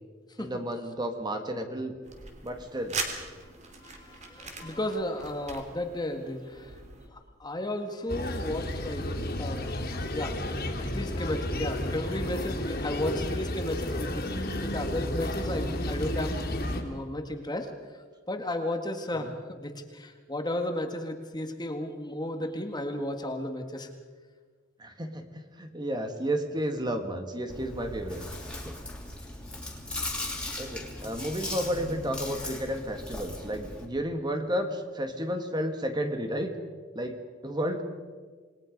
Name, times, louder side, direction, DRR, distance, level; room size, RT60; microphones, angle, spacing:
voice 1, 0.4-2.0 2.4-3.0 24.8-28.3 28.7-28.8 30.6-36.5 36.9-37.2 37.4-37.8, equal, 20° right, 5 dB, 1.8 m, -32 dB
sound 1, 2.0-7.1, right 3 dB, 40° right, 3.1 m, -40 dB
voice 2, 3.8-6.8 7.1-10.4 10.8-16.4 16.8-17.7 18.3-23.9, left 1 dB, 20° left, 5 dB, 1.7 m, -34 dB
sound 2, 8.1-16.8, left 1 dB, 50° left, 3.2 m, -32 dB
Chewing mastication, 27.5-33.8, left 2 dB, 5° left, 3.2 m, -38 dB
28.0 x 20.5 x 5.3 m, 1.5 s
head